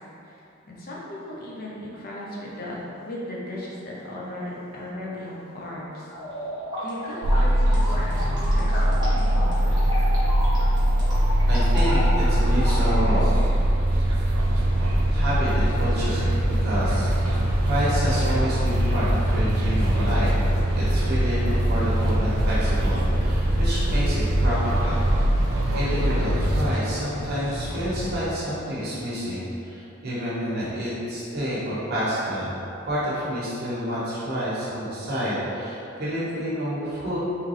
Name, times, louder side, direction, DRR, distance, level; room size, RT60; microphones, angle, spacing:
voice 1, 0.2-2.8 3.0-6.1 6.8-9.8, left 1 dB, 45° left, -5 dB, 0.6 m, -37 dB
sound 1, 6.1-13.1, equal, 20° right, 1.2 m, -32 dB
sound 2, 7.2-26.8, right 1 dB, 85° right, 0.5 m, -22 dB
voice 2, 11.5-13.4 15.1-20.4 20.8-25.0 25.7-32.6 32.8-37.2, equal, 50° right, -10 dB, 1.3 m, -29 dB
sound 3, 14.4-28.2, equal, 80° left, 1.3 m, -34 dB
3.7 x 3.2 x 3.2 m, 2.7 s
head